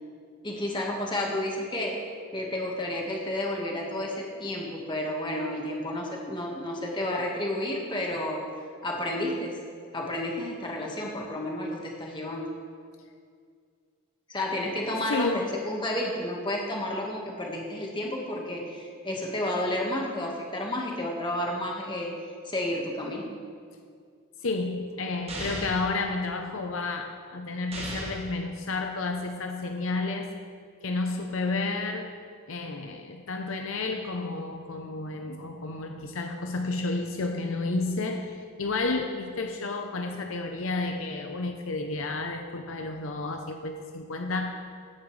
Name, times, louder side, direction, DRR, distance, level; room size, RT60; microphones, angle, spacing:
voice 1, 0.4-2.0 2.3-8.4 8.8-9.5 9.9-12.5 14.3-22.1 22.4-23.3, left 1 dB, 20° left, -1 dB, 1.5 m, -31 dB
voice 2, 15.1-15.5 24.4-30.3 30.8-32.2 32.5-44.7, left 3 dB, 70° left, 5 dB, 0.7 m, -31 dB
sound 1, 25.3-25.9 27.7-28.3, right 1 dB, 30° right, 1.8 m, -35 dB
16.0 x 9.9 x 3.3 m, 2.2 s
head